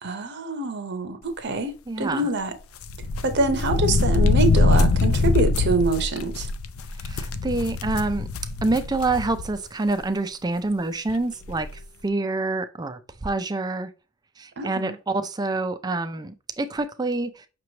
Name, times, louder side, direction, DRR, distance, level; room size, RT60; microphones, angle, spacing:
voice 1, 0.0-1.7 2.0-2.5 3.2-6.5 14.6-15.0, right 2 dB, 50° right, 0.8 m, -25 dB
voice 2, 1.9-2.3 7.0-8.3 8.6-13.9 14.4-17.5, right 2 dB, 20° right, 0.4 m, -27 dB
sound 1, 2.8-9.5 9.9-10.0 11.1-11.2 11.4-11.7, left 3 dB, 70° left, 0.5 m, -23 dB
5.9 x 3.1 x 2.8 m
head